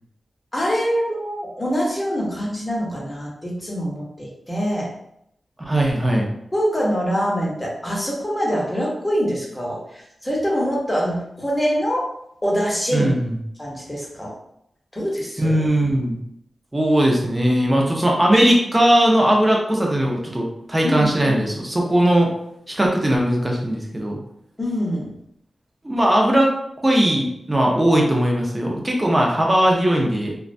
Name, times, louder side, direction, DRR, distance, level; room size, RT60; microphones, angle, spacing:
voice 1, 0.5-4.9 6.5-12.0 12.4-13.1 13.6-14.3 14.9-15.6 20.8-21.4 24.6-25.1, equal, 15° left, -4 dB, 0.7 m, -24 dB
voice 2, 5.6-6.3 12.9-13.4 15.4-16.2 16.7-22.3 22.7-24.2 25.8-26.5 26.8-30.3, right 1 dB, 15° right, -1 dB, 0.5 m, -19 dB
2.4 x 2.1 x 2.5 m, 0.76 s
wide cardioid pair, 120°, 0 cm